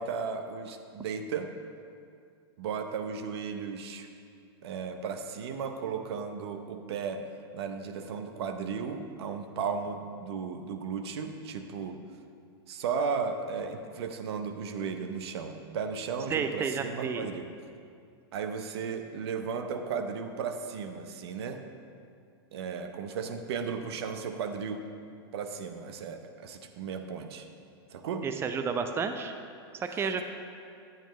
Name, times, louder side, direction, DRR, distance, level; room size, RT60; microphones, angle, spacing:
voice 1, 0.0-1.5 2.6-4.1 4.6-7.2 7.5-12.0 12.7-17.5 18.3-21.6 22.5-24.9 25.3-27.5 27.9-28.3 29.7-29.8, right 6 dB, 75° right, 7 dB, 0.8 m, -35 dB
voice 2, 16.3-17.3 28.2-29.3 29.7-30.2, right 5 dB, 20° right, 7 dB, 0.5 m, -31 dB
10.0 x 9.1 x 3.1 m, 2.3 s
hypercardioid pair, 115°, 14 cm